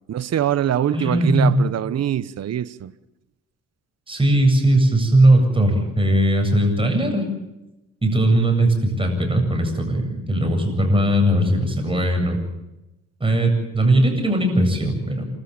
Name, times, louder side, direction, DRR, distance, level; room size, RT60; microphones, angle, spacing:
voice 1, 0.1-2.9, right 11 dB, 55° right, 1.1 m, -23 dB
voice 2, 0.9-1.6 4.1-7.3 8.0-12.4 13.2-15.3, right 1 dB, 15° right, 7.9 m, -19 dB
29.5 x 13.5 x 8.9 m
cardioid pair, 90°, 30 cm